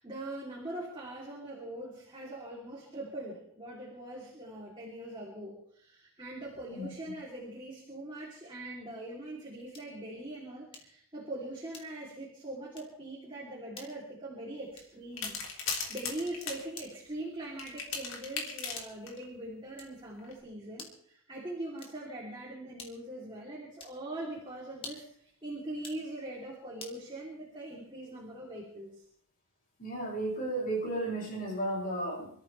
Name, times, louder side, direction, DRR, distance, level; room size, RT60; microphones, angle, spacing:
voice 1, 0.0-29.0, right 1 dB, 25° right, -4 dB, 3.5 m, -42 dB
sound 1, 9.7-10.0 10.7-11.0 11.7-12.2 12.7-13.0 13.7-14.0 14.7-15.1 15.7-16.1 16.7-17.1 17.7-18.1 18.7-19.1 19.7-20.1 20.7-21.1 21.7-22.1 22.8-23.2 23.7-24.0 24.7-25.2 25.7-26.1 26.8-27.0, left 3 dB, 25° left, 2.7 m, -49 dB
sound 2, 15.2-16.6 17.6-19.2 20.2-20.3, left 5 dB, 70° left, 3.3 m, -37 dB
voice 2, 29.8-32.3, right 1 dB, 45° left, -3 dB, 7.0 m, -33 dB
26.5 x 14.0 x 3.5 m, 0.65 s
head